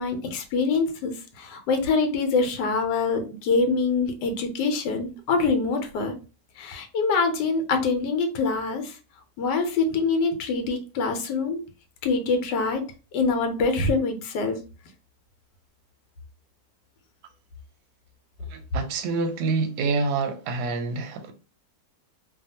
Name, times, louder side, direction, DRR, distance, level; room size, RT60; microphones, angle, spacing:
voice 1, 0.0-6.1 6.6-8.9 9.4-11.6 12.0-12.8 13.1-14.6, left 4 dB, 75° left, 1.2 m, -25 dB
voice 2, 18.5-21.3, right 4 dB, 70° right, 1.0 m, -27 dB
2.8 x 2.3 x 2.7 m
omnidirectional pair, 1.9 m